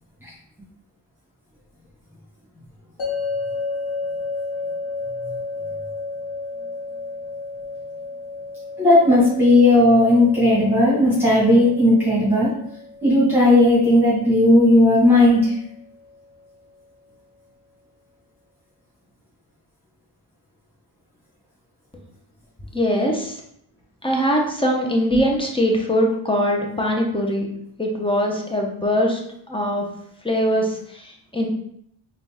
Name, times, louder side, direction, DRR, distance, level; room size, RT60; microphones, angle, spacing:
sound 1, 3.0-16.1, left 3 dB, 85° left, 1.2 m, -33 dB
voice 1, 8.8-12.5 13.0-15.5, left 1 dB, 5° right, -8 dB, 1.5 m, -15 dB
voice 2, 22.7-23.4 24.0-27.5 27.8-29.2 29.5-29.8 30.2-31.5, equal, 10° left, 0 dB, 0.9 m, -22 dB
4.0 x 2.6 x 3.5 m, 0.72 s
cardioid pair, 65°, 46 cm